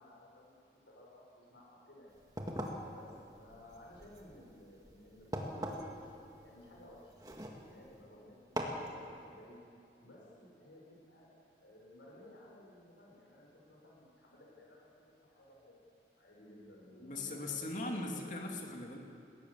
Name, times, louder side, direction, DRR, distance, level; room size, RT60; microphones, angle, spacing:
voice 1, 0.0-2.1 2.9-7.2 7.7-9.6 10.0-15.8 16.1-18.3, left 1 dB, 90° left, -3 dB, 6.6 m, -57 dB
sound 1, 2.1-8.0 8.6-8.9, equal, 20° right, 1.9 m, -43 dB
voice 2, 17.0-19.0, left 2 dB, 45° left, 1 dB, 2.7 m, -39 dB
20.0 x 18.5 x 7.2 m, 2.6 s
head